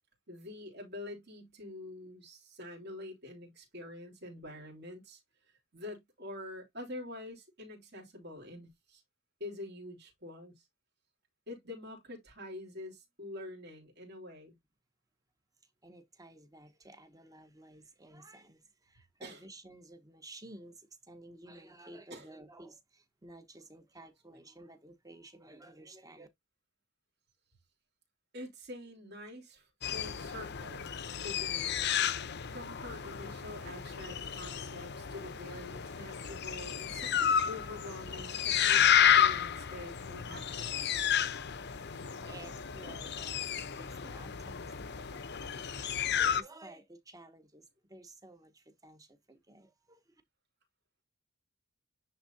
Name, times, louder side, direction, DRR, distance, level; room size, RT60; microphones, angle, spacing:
voice 1, 0.3-5.2 5.7-9.0 9.4-10.6 11.5-14.5 19.2-19.4 22.1-22.3 24.3-24.4 28.3-30.9 31.2-31.7 32.5-41.0, left 1 dB, 55° right, 3.3 m, -46 dB
voice 2, 15.8-26.3 41.9-45.3 45.5-47.6 47.9-50.2, right 2 dB, 15° right, 1.1 m, -53 dB
sound 1, 29.8-46.4, left 9 dB, 55° left, 0.7 m, -31 dB
10.0 x 3.7 x 2.7 m
head